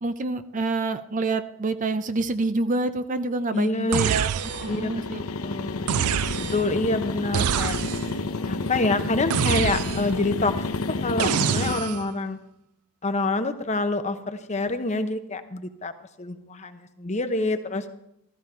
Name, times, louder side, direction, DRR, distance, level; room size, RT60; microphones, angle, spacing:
voice 1, 0.0-5.2, right 3 dB, 35° right, 11 dB, 0.5 m, -27 dB
voice 2, 3.5-4.2 4.7-6.0 6.5-7.8 8.4-10.6 10.9-12.4 13.0-15.9 16.2-17.8, left 2 dB, 30° left, 9 dB, 0.9 m, -27 dB
sound 1, 3.9-4.8 5.9-6.7 7.3-8.2 9.3-10.2 11.2-12.1, right 9 dB, 85° right, 0.4 m, -26 dB
sound 2, 4.3-11.8, left 3 dB, 75° left, 0.8 m, -30 dB
14.0 x 14.0 x 4.4 m, 0.78 s
head